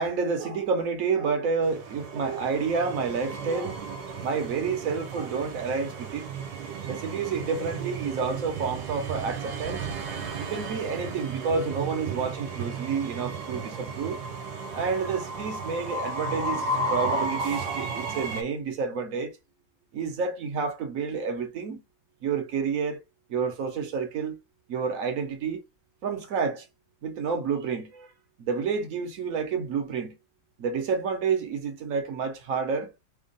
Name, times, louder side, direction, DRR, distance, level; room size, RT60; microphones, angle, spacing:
voice 1, 0.0-3.8 4.2-6.3 6.9-9.8 10.4-14.2 14.7-19.4 19.9-21.8 22.2-23.0 23.3-24.4 24.7-25.6 26.0-26.7 27.0-28.1 28.4-30.2 30.6-32.9, right 5 dB, 60° right, 1.0 m, -29 dB
Train, 1.6-18.4, right 3 dB, 75° right, 1.5 m, -34 dB
3.5 x 2.3 x 3.8 m
omnidirectional pair, 2.0 m